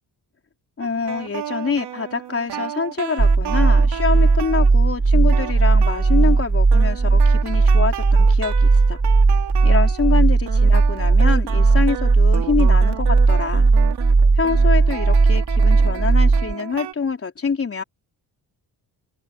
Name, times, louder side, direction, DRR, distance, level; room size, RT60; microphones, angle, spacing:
voice 1, 0.8-9.0 9.6-13.7 14.4-17.8, left 5 dB, 35° left, 3.9 m, -25 dB
sound 1, 0.8-4.8 5.3-6.4 6.7-10.2 10.5-16.9, right 10 dB, 75° right, 2.6 m, -33 dB
sound 2, 3.2-16.5, right 3 dB, 25° right, 3.5 m, -16 dB
open air
cardioid pair, 90°, 40 cm